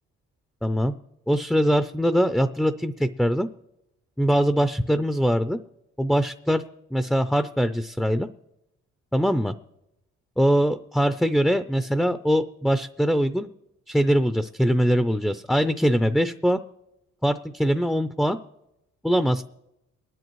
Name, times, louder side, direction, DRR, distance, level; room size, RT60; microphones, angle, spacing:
voice 1, 0.6-0.9 1.3-3.5 4.2-5.6 6.0-6.6 6.9-8.3 9.1-9.5 10.4-13.5 13.9-16.6 17.2-18.4 19.0-19.4, equal, ahead, 10 dB, 0.4 m, -22 dB
22.5 x 10.5 x 3.1 m, 0.88 s
cardioid pair, 90°, 30 cm